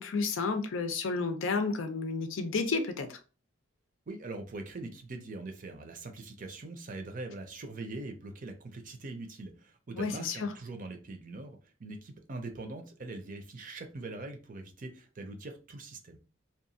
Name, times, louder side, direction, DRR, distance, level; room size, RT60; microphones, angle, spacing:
voice 1, 0.0-3.2 10.0-10.5, left 4 dB, 75° left, 0.5 m, -31 dB
voice 2, 4.1-16.2, right 2 dB, 40° right, 0.5 m, -42 dB
2.8 x 2.3 x 2.7 m
head